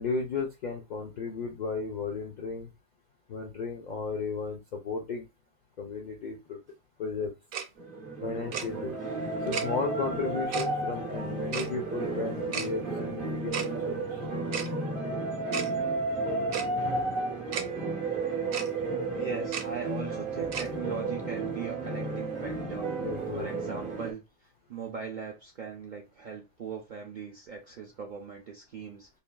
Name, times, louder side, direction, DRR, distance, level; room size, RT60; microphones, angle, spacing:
voice 1, 0.0-2.7 3.3-5.3 5.8-6.6 7.0-7.3 8.2-8.9 9.4-14.2 23.0-23.5, left 4 dB, 65° left, 0.4 m, -34 dB
Tick-tock, 7.5-7.6 8.5-8.7 9.5-9.6 10.5-10.7 11.5-11.7 12.5-12.7 13.5-13.7 14.5-14.7 15.5-15.7 16.5-16.7 17.5-17.6 18.5-18.7 19.5-19.6 20.5-20.7, right 7 dB, 90° right, 1.0 m, -33 dB
sound 1, 7.8-24.1, right 3 dB, 50° right, 0.8 m, -33 dB
voice 2, 19.1-22.9 23.3-24.2 24.7-29.1, right 6 dB, 65° right, 0.4 m, -39 dB
3.3 x 2.3 x 2.2 m
omnidirectional pair, 1.3 m